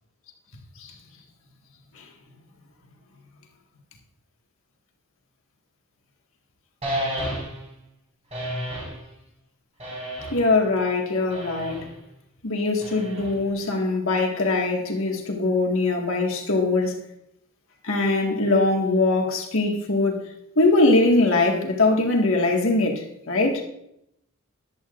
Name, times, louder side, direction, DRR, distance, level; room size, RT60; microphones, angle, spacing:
sound 1, 6.8-7.7 8.3-9.0 9.8-10.5 11.3-11.9 12.8-13.5, equal, 30° right, 5.1 m, -31 dB
voice 1, 10.3-11.8 12.4-17.0 17.8-20.2 20.6-23.6, left 2 dB, 70° left, 1.9 m, -22 dB
14.5 x 11.0 x 2.6 m
head